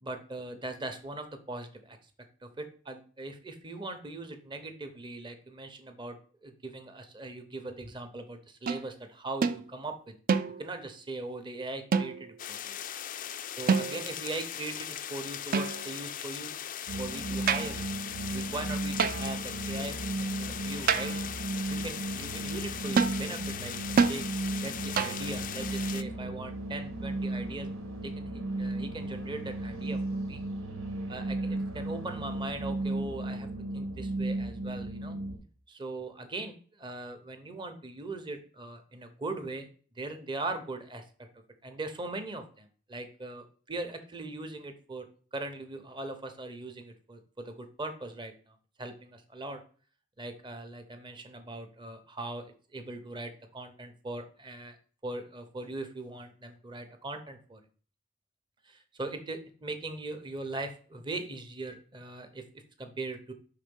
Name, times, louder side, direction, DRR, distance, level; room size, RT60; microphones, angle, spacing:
voice 1, 0.0-2.0 2.4-6.2 6.4-10.1 10.6-12.8 13.6-16.5 17.0-17.9 18.3-21.1 21.7-24.2 24.6-27.7 28.0-30.4 31.1-33.5 33.7-35.2 35.7-39.7 40.0-41.3 41.6-49.6 50.2-52.5 52.7-54.8 55.0-57.6 58.6-62.4 62.8-63.3, right 2 dB, 25° right, 6 dB, 0.8 m, -40 dB
sound 1, 8.7-8.9 9.4-9.6 10.3-10.8 11.9-12.4 13.7-14.2 15.5-16.1 17.5-17.8 19.0-19.4 20.9-21.3 23.0-23.2 24.0-24.2 25.0-25.3, right 5 dB, 45° right, 0.4 m, -27 dB
sound 2, 12.4-26.0, left 10 dB, 40° left, 0.4 m, -39 dB
sound 3, 16.9-35.4, right 2 dB, 85° right, 1.4 m, -35 dB
5.8 x 3.6 x 5.3 m, 0.42 s
head